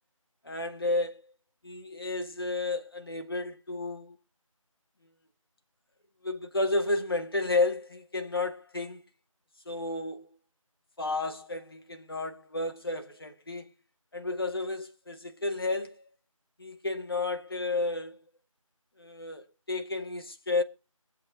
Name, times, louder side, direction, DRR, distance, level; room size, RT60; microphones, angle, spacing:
voice 1, 0.4-1.2 1.6-4.2 6.2-9.0 9.7-10.3 11.0-13.7 14.1-16.0 16.6-18.2 19.0-20.6, left 2 dB, 40° left, 1.8 m, -32 dB
23.0 x 7.9 x 4.1 m
figure-of-eight pair, 170°, 18 cm